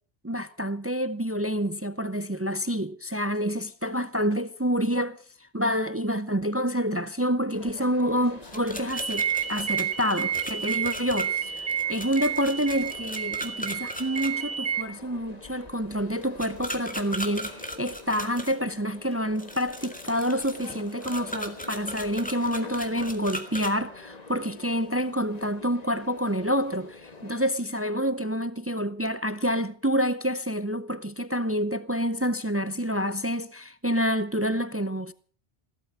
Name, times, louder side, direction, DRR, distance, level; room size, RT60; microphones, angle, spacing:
voice 1, 0.2-35.1, equal, 15° right, 0.6 m, -28 dB
sound 1, 7.5-27.4, left 3 dB, 40° left, 1.7 m, -46 dB
sound 2, 8.5-14.3 16.4-18.5 19.4-23.7, equal, 5° left, 2.3 m, -37 dB
sound 3, 8.9-14.8, right 8 dB, 80° right, 1.5 m, -30 dB
16.0 x 13.5 x 5.9 m
omnidirectional pair, 1.1 m